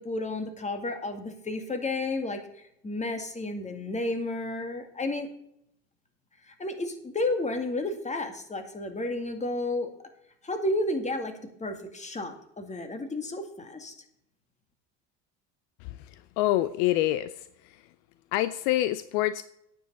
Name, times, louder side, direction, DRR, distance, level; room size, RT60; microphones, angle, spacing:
voice 1, 0.0-5.3 6.4-9.9 10.4-13.9, left 2 dB, 20° left, 6 dB, 2.1 m, -32 dB
voice 2, 16.4-17.5 18.3-19.4, left 15 dB, 70° left, 14 dB, 0.6 m, -26 dB
9.3 x 6.2 x 8.2 m, 0.75 s
hypercardioid pair, 70°, 34 cm